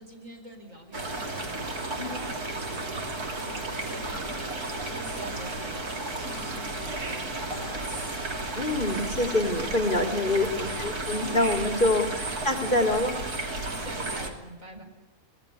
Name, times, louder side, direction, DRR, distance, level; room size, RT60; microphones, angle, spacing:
voice 1, 0.0-8.4 10.2-11.1 13.6-14.8, equal, 60° right, 4 dB, 5.0 m, -46 dB
sound 1, 0.9-14.3, right 2 dB, 85° right, 3.4 m, -33 dB
voice 2, 8.6-13.1, left 2 dB, 35° left, 5 dB, 2.3 m, -26 dB
24.5 x 18.0 x 9.7 m, 1.1 s
omnidirectional pair, 1.6 m